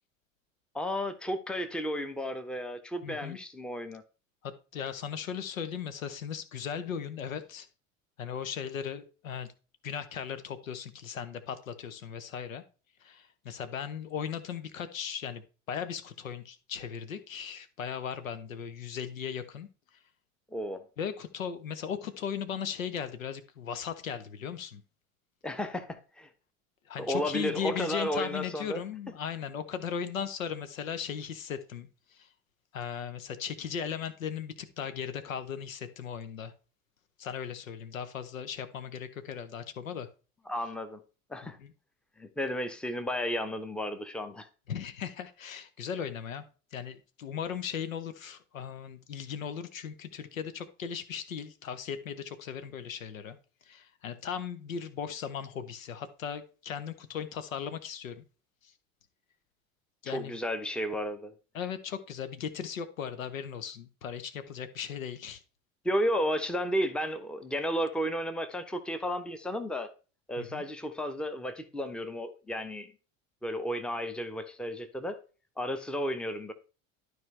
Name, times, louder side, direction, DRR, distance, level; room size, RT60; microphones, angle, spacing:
voice 1, 0.7-4.0 20.5-20.8 25.4-26.3 27.0-28.8 40.5-41.0 41.3-41.6 42.2-44.5 60.1-61.3 65.8-69.9 70.3-72.9 73.4-75.2 75.6-76.5, equal, ahead, 0.9 m, -33 dB
voice 2, 3.0-3.4 4.4-7.7 8.2-9.5 9.8-12.6 13.0-15.4 15.7-19.7 21.0-24.8 26.9-32.3 32.7-36.5 37.2-40.1 41.4-41.7 44.7-46.4 46.7-53.4 53.7-58.2 60.0-60.3 61.5-65.4 70.4-70.6, left 7 dB, 70° left, 1.0 m, -37 dB
12.0 x 4.6 x 3.2 m
figure-of-eight pair, 70°, 41 cm